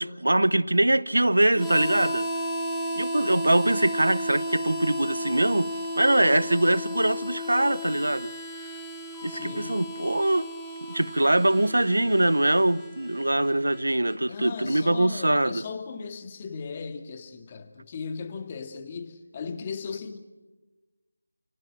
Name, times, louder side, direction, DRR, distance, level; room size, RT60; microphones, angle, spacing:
voice 1, 0.0-2.3 3.0-5.7 6.0-8.3 9.2-10.5 10.9-15.6, right 1 dB, 85° right, 0.9 m, -23 dB
Harmonica, 1.5-14.2, equal, ahead, 2.4 m, -34 dB
voice 2, 9.3-9.7 14.3-20.2, left 5 dB, 25° left, 2.1 m, -37 dB
29.5 x 18.0 x 6.2 m
figure-of-eight pair, 165°, 0 cm